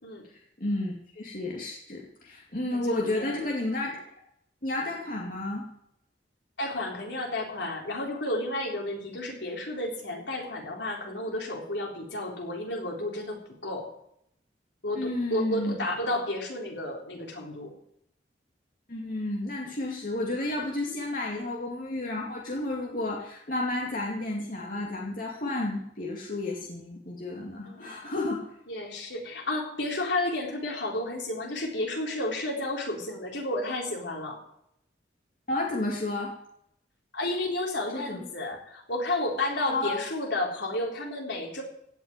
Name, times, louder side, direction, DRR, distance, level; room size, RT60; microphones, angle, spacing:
voice 1, 0.3-4.0 4.6-5.6 15.0-15.8 18.9-28.5 35.5-36.3 37.9-38.2 39.7-39.9, left 2 dB, 50° left, -2 dB, 2.4 m, -31 dB
voice 2, 2.7-3.4 6.6-13.9 14.8-17.7 27.7-28.0 28.7-34.4 37.1-41.6, left 1 dB, 70° left, 0 dB, 4.0 m, -32 dB
16.5 x 6.3 x 9.7 m, 0.73 s
head